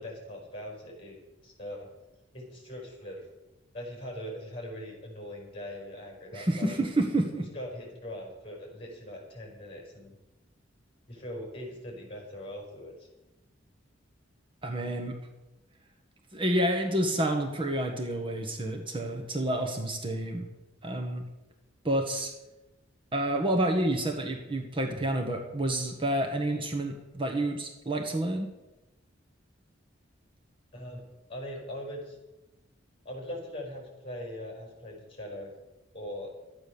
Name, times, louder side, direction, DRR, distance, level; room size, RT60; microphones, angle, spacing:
voice 1, 0.0-1.9 2.3-3.3 3.7-6.8 7.5-10.2 11.1-13.1 30.7-31.0 31.3-32.2 33.0-35.5 35.9-36.3, left 1 dB, 30° left, 1 dB, 5.3 m, -41 dB
voice 2, 6.3-7.5 14.6-15.2 16.3-20.5 20.8-21.2 21.8-22.3 23.1-28.5, right 1 dB, 30° right, 4 dB, 1.4 m, -29 dB
13.0 x 9.6 x 7.0 m, 1.0 s
head